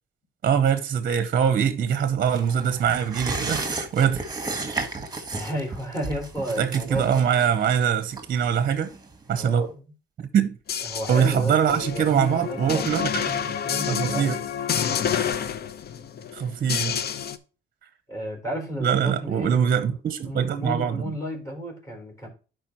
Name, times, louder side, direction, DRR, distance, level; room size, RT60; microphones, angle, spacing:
voice 1, 0.4-4.2 6.6-8.9 9.3-9.7 10.2-10.5 11.1-13.2 13.9-14.4 16.3-17.1 18.8-21.1, right 8 dB, 50° right, 0.7 m, -23 dB
sound 1, 2.3-9.3 9.7-9.8, right 3 dB, 20° right, 1.4 m, -34 dB
voice 2, 5.3-7.2 9.3-9.9 10.8-14.4 18.1-19.7 20.2-22.3, equal, 15° left, 4.0 m, -33 dB
sound 2, 10.7-17.4, left 8 dB, 55° left, 0.6 m, -29 dB
11.5 x 4.6 x 2.9 m
cardioid pair, 90°, 20 cm